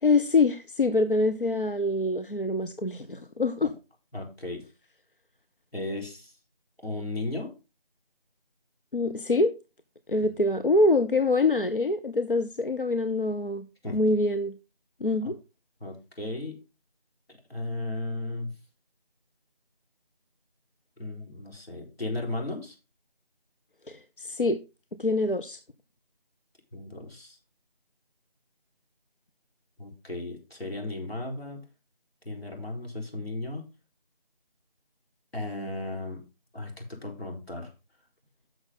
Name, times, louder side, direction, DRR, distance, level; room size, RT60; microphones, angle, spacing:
voice 1, 0.0-3.7 8.9-9.6 10.1-13.7 13.9-14.5 15.0-15.4 23.9-24.6 25.0-25.6, left 2 dB, 60° left, 0.7 m, -25 dB
voice 2, 4.1-4.6 5.7-6.3 6.8-7.5 13.8-14.0 15.8-16.6 17.5-18.5 21.0-22.8 26.7-27.4 29.8-31.6 32.2-33.6 35.3-36.2 36.5-37.7, left 2 dB, 85° left, 4.3 m, -35 dB
11.0 x 6.3 x 3.8 m
figure-of-eight pair, 175°, 30 cm